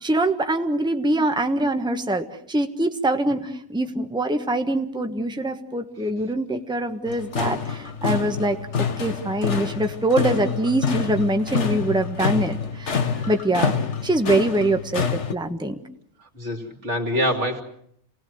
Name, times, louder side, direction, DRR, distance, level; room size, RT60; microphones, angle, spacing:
voice 1, 0.0-12.9 13.3-13.7 14.0-15.8, right 1 dB, 5° right, 6 dB, 1.3 m, -24 dB
sound 1, 7.1-15.3, left 6 dB, 60° left, 1.6 m, -27 dB
voice 2, 16.3-17.6, equal, 55° right, 3 dB, 3.3 m, -25 dB
28.5 x 19.0 x 7.9 m, 0.70 s
omnidirectional pair, 1.4 m